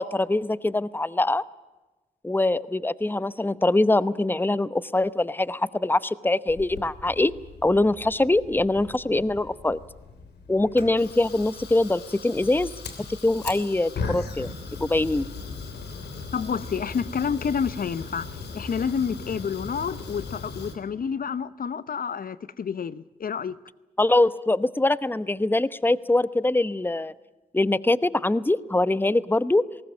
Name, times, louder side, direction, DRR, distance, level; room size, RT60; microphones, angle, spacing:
voice 1, 0.0-1.4 2.2-7.3 7.6-9.8 10.5-12.7 13.1-14.5 14.8-15.3 24.0-27.1 27.5-29.6, left 2 dB, 10° left, 0.9 m, -23 dB
Fire, 6.5-20.8, left 4 dB, 75° left, 3.2 m, -38 dB
voice 2, 16.3-18.3 18.5-23.6, left 6 dB, 55° left, 0.8 m, -29 dB
20.5 x 18.5 x 8.9 m
supercardioid pair, 40°, 17 cm